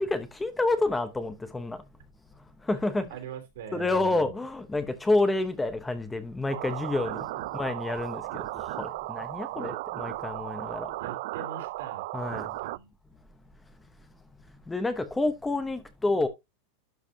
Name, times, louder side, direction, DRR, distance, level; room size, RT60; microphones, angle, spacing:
voice 1, 0.0-1.8 2.7-3.1 3.7-7.2 7.5-10.9 12.1-12.5 14.7-16.3, left 2 dB, 5° left, 0.7 m, -28 dB
voice 2, 3.0-4.3 7.3-7.4 9.4-9.8 11.0-12.1 12.3-12.9, right 8 dB, 75° right, 3.1 m, -42 dB
sound 1, 6.5-12.8, right 19 dB, 55° right, 0.4 m, -35 dB
11.5 x 5.2 x 2.7 m
supercardioid pair, 170°, 0 cm